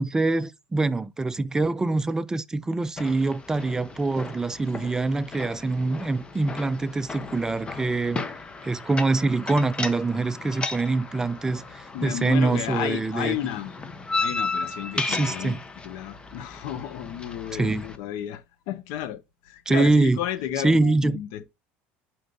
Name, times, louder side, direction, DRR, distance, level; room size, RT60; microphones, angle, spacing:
voice 1, 0.0-8.2 8.6-13.4 15.0-15.6 17.5-17.8 19.7-20.2 20.6-21.2, right 3 dB, 10° right, 0.4 m, -24 dB
sound 1, 3.0-18.0, left 3 dB, 20° left, 0.8 m, -35 dB
voice 2, 11.9-13.8 14.2-15.6 15.8-21.5, left 11 dB, 75° left, 0.9 m, -32 dB
5.4 x 4.5 x 3.8 m
supercardioid pair, 115°, 5 cm